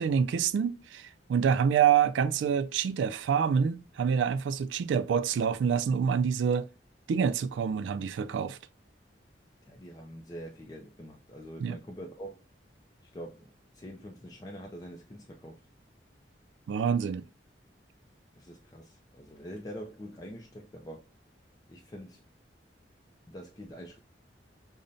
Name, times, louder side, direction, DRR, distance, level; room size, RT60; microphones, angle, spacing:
voice 1, 0.0-6.7 7.1-8.6 11.6-11.8 16.7-17.2, right 7 dB, 85° right, 0.3 m, -27 dB
voice 2, 9.7-12.4 13.0-15.6 18.3-21.0 21.7-22.2 23.3-24.0, equal, 20° left, 0.4 m, -45 dB
5.2 x 2.1 x 2.5 m
head